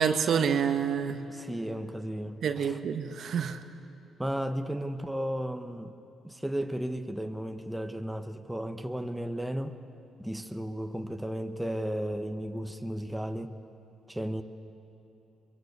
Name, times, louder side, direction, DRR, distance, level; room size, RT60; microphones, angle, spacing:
voice 1, 0.0-1.3 2.4-3.6, right 7 dB, 65° right, 8 dB, 1.2 m, -27 dB
voice 2, 1.3-2.8 4.2-6.0 6.2-9.8 10.2-13.6 14.1-14.4, equal, 5° right, 7 dB, 1.2 m, -34 dB
23.0 x 23.0 x 8.1 m, 2.9 s
cardioid pair, 90°, 0 cm